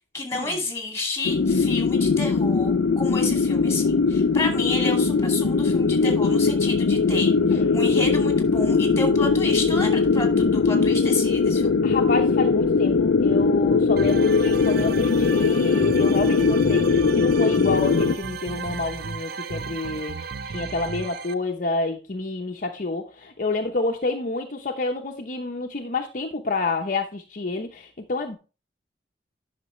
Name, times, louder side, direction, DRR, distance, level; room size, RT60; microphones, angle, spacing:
voice 1, 0.1-11.7, left 2 dB, 15° left, 2.4 m, -31 dB
sound 1, 1.2-18.1, left 4 dB, 90° left, 0.4 m, -20 dB
voice 2, 7.5-7.8 11.8-20.2 20.5-28.4, left 3 dB, 50° left, 0.8 m, -29 dB
sound 2, 14.0-21.3, right 5 dB, 60° right, 0.5 m, -34 dB
11.0 x 5.9 x 3.1 m
head